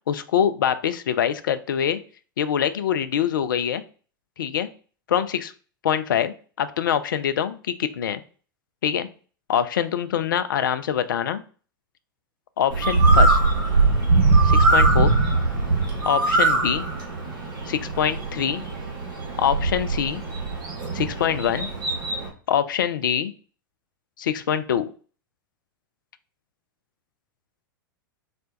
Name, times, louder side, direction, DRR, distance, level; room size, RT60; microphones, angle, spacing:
voice 1, 0.1-2.0 2.4-3.8 4.4-4.7 5.1-5.5 5.8-8.2 8.8-9.1 9.5-11.4 12.6-13.4 14.4-15.2 16.1-16.8 17.7-18.6 19.4-20.2 20.9-21.7 22.5-23.3 24.2-24.9, left 9 dB, 65° left, 12 dB, 0.4 m, -24 dB
Bird, 12.7-22.3, right 3 dB, 65° right, 1.4 m, -21 dB
4.2 x 2.2 x 3.9 m, 0.39 s
figure-of-eight pair, 90°, 12 cm